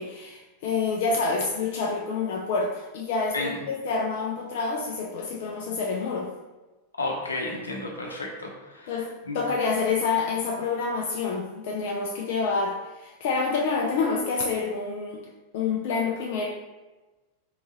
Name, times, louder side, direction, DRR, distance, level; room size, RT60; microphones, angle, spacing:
voice 1, 0.0-6.3 8.9-15.2 15.5-16.5, left 4 dB, 50° left, -1 dB, 0.4 m, -27 dB
voice 2, 7.0-8.9 9.3-9.4, left 2 dB, 75° left, 0 dB, 0.7 m, -32 dB
3.7 x 3.5 x 2.9 m, 1.2 s
figure-of-eight pair, 90°, 0 cm